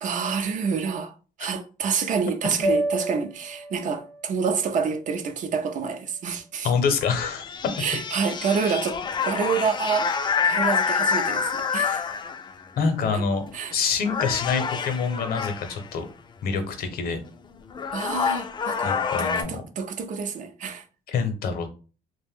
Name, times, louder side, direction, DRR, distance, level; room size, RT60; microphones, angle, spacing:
voice 1, 0.0-1.1 1.4-6.7 7.8-12.1 13.1-13.2 13.5-13.7 17.9-20.8, right 6 dB, 50° right, 0.5 m, -28 dB
sound 1, 2.6-6.9, right 1 dB, 70° right, 0.9 m, -32 dB
voice 2, 6.6-7.5 12.8-13.5 13.7-16.1 16.4-17.2 18.8-19.6 21.1-21.7, left 5 dB, 60° left, 0.7 m, -26 dB
sound 2, 7.0-12.6 13.5-13.7 14.0-15.9 17.3-17.4 17.7-19.4, left 6 dB, 25° left, 0.3 m, -27 dB
2.5 x 2.1 x 3.4 m
cardioid pair, 110°, 17 cm